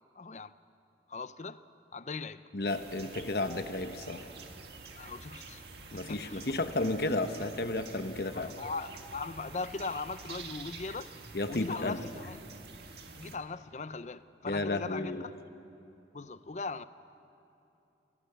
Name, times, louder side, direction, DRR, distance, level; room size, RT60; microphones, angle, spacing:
voice 1, 0.2-0.5 1.1-1.6 1.9-2.4 5.0-5.6 5.9-6.6 8.3-11.2 11.5-12.4 13.1-15.3 16.1-16.8, left 4 dB, 40° left, 0.6 m, -39 dB
voice 2, 2.5-4.3 5.9-8.5 11.3-12.1 14.4-15.3, left 2 dB, 60° left, 1.0 m, -33 dB
sound 1, 2.7-13.4, right 4 dB, 65° right, 1.7 m, -48 dB
28.0 x 17.0 x 6.9 m
head